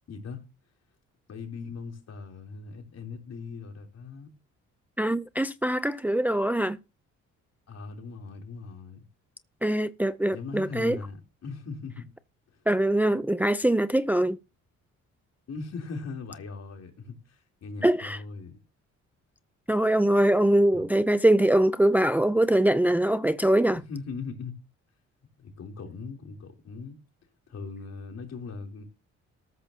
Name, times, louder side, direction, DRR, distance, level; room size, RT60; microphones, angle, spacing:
voice 1, 0.1-0.4 1.3-4.3 7.7-9.0 10.3-12.1 12.5-12.6 15.5-18.6 20.7-20.9 23.7-24.5 25.4-27.0 27.5-28.8, left 4 dB, 55° left, 3.5 m, -39 dB
voice 2, 5.0-6.8 9.6-11.0 12.7-14.4 17.8-18.2 19.7-23.8, right 1 dB, 5° right, 0.6 m, -23 dB
13.5 x 13.5 x 2.9 m
cardioid pair, 90°, 30 cm